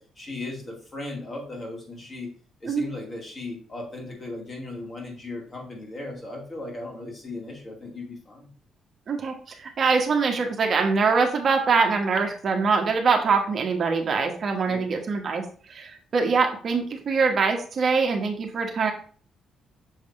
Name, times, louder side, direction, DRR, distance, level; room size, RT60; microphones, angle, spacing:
voice 1, 0.0-2.3 2.6-8.5 14.7-14.9, left 2 dB, 30° left, -1 dB, 2.4 m, -37 dB
voice 2, 9.1-15.4 15.7-18.9, right 4 dB, 50° right, 3 dB, 1.2 m, -23 dB
6.5 x 3.4 x 4.3 m, 0.43 s
cardioid pair, 90°, 0 cm